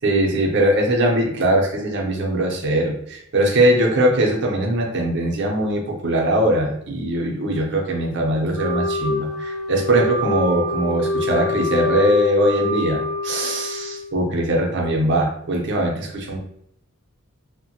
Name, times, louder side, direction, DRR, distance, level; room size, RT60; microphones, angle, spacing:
voice 1, 0.0-16.4, right 1 dB, 55° right, 0 dB, 0.6 m, -21 dB
Wind instrument woodwind instrument, 8.5-14.2, left 2 dB, 80° left, 0.5 m, -25 dB
2.9 x 2.1 x 2.8 m, 0.71 s
head